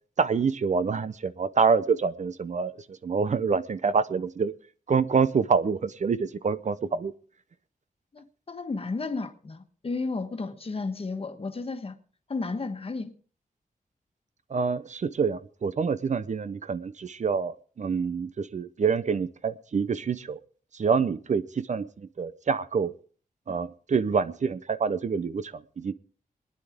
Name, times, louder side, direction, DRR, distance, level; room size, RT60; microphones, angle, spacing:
voice 1, 0.2-4.5 4.9-7.1 14.5-20.4 20.7-22.9 23.5-25.9, right 5 dB, 50° right, 0.6 m, -26 dB
voice 2, 8.1-11.9 12.3-13.1, left 3 dB, 40° left, 1.4 m, -33 dB
23.5 x 10.0 x 3.6 m
wide cardioid pair, 145°, 15 cm